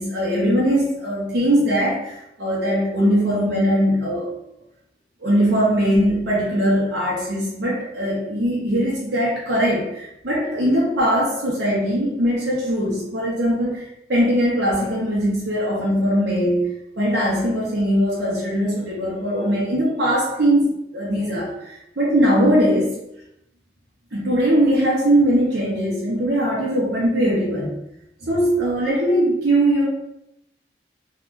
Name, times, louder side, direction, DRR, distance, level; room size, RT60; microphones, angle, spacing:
voice 1, 0.0-4.3 5.2-13.8 14.1-22.9 24.1-27.8 28.2-29.9, equal, 70° right, -5 dB, 0.7 m, -20 dB
3.7 x 2.3 x 2.5 m, 0.80 s
head